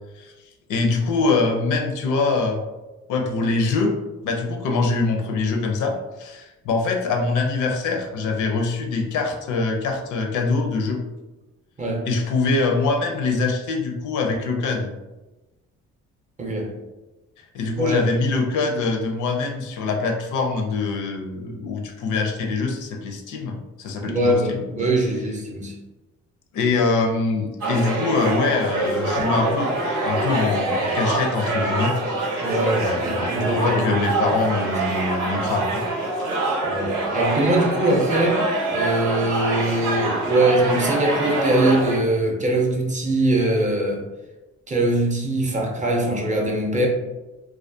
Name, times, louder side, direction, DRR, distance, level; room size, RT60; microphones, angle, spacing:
voice 1, 0.7-2.6 3.1-3.9 4.2-11.0 12.0-14.9 17.5-24.6 26.5-29.7 30.0-31.9 32.8-35.9 36.2-36.3, left 3 dB, 80° left, 3 dB, 0.5 m, -24 dB
voice 2, 16.4-16.7 17.8-18.2 24.0-25.7 32.4-33.9 34.7-34.8 36.6-38.4 38.7-44.0 44.7-46.9, right 1 dB, 25° right, 0 dB, 0.5 m, -22 dB
sound 1, 27.6-42.0, right 2 dB, 85° right, 0.7 m, -25 dB
2.3 x 2.2 x 2.5 m, 1.1 s
cardioid pair, 90°, 30 cm